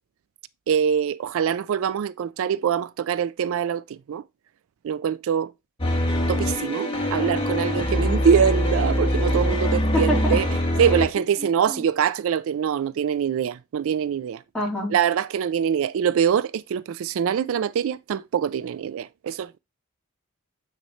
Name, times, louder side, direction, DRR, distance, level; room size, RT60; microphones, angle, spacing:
voice 1, 0.7-4.2 4.8-5.5 6.3-10.5 10.8-14.4 14.9-19.6, right 8 dB, 65° right, 0.3 m, -24 dB
sound 1, 5.8-11.1, equal, 25° left, 1.8 m, -23 dB
voice 2, 9.7-10.4 11.4-11.8 14.5-14.9, left 1 dB, 5° left, 3.8 m, -27 dB
9.1 x 4.3 x 3.1 m
head